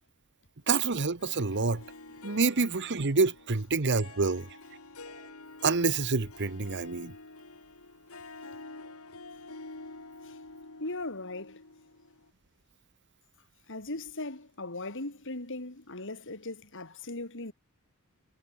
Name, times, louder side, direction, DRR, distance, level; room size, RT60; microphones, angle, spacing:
voice 1, 0.7-1.8 2.2-4.5 5.6-7.1, right 4 dB, 55° right, 1.2 m, -27 dB
Harp, 1.2-12.3, left 3 dB, 80° left, 3.3 m, -48 dB
voice 2, 10.8-11.6 13.7-17.5, left 2 dB, 60° left, 3.8 m, -38 dB
head